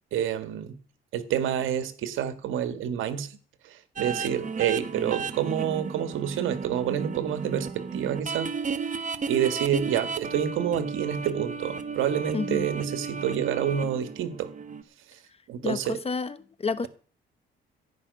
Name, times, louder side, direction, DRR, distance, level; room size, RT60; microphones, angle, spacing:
voice 1, 0.1-0.8 1.1-3.3 3.6-8.5 9.3-14.5 15.5-16.0, right 9 dB, 85° right, 1.8 m, -28 dB
sound 1, 4.0-14.8, right 5 dB, 40° right, 1.4 m, -34 dB
voice 2, 12.3-12.7 15.6-16.9, left 4 dB, 30° left, 1.1 m, -30 dB
14.5 x 6.0 x 9.6 m
cardioid pair, 90°, 20 cm